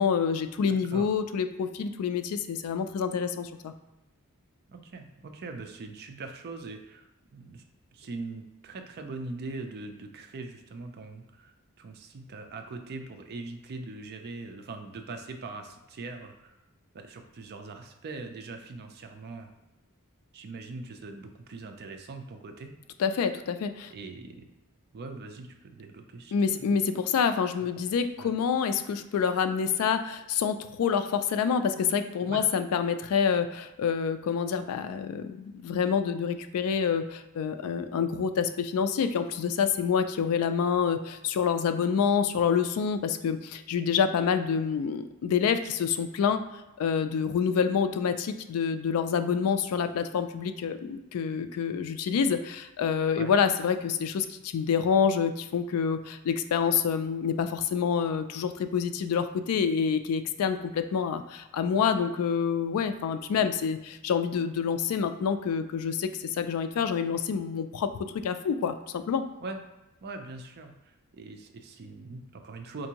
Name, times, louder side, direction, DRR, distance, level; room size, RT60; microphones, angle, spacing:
voice 1, 0.0-3.7 23.0-23.9 26.3-46.4 46.8-68.7 69.1-69.2, left 6 dB, 70° left, 10 dB, 0.3 m, -27 dB
voice 2, 0.7-1.1 4.7-7.6 7.9-16.5 16.9-19.5 20.3-22.7 23.9-24.4 24.9-26.3 26.6-26.7 28.2-28.3 32.3-32.4 53.2-53.3 69.4-69.6 70.0-72.9, right 3 dB, 45° right, 5 dB, 0.4 m, -41 dB
4.5 x 2.5 x 2.8 m, 0.97 s
head